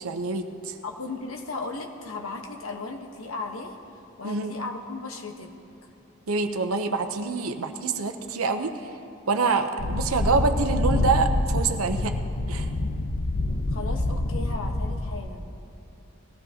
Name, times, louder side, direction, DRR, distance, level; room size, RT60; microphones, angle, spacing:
voice 1, 0.0-0.7 4.2-4.5 6.3-8.7 9.3-12.1 12.5-12.7, right 4 dB, 85° right, 6 dB, 0.8 m, -26 dB
voice 2, 0.8-3.8 4.2-5.5 13.7-15.5, left 3 dB, 75° left, 2 dB, 1.2 m, -36 dB
sound 1, 9.8-15.2, left 2 dB, 60° left, 0.9 m, -26 dB
20.0 x 15.0 x 2.9 m, 2.7 s
head